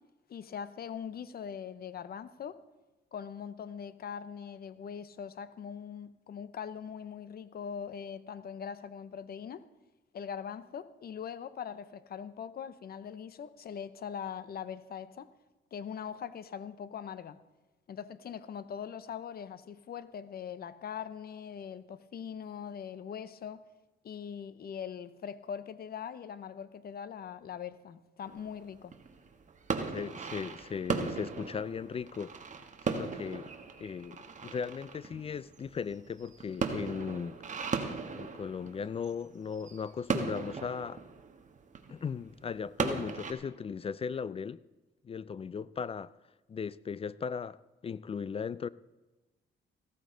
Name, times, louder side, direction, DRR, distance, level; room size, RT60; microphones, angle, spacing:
voice 1, 0.3-2.6 3.1-9.7 10.1-15.3 15.7-17.4 17.9-23.6 24.0-29.0, left 7 dB, 50° left, 0.7 m, -41 dB
sound 1, 28.2-43.3, right 5 dB, 40° right, 1.4 m, -37 dB
voice 2, 29.9-32.3 32.9-33.5 33.8-37.4 38.1-41.0 41.9-44.6 45.0-46.1 46.5-48.7, left 6 dB, 30° left, 0.3 m, -37 dB
15.0 x 14.0 x 3.8 m
cardioid pair, 90°, 20 cm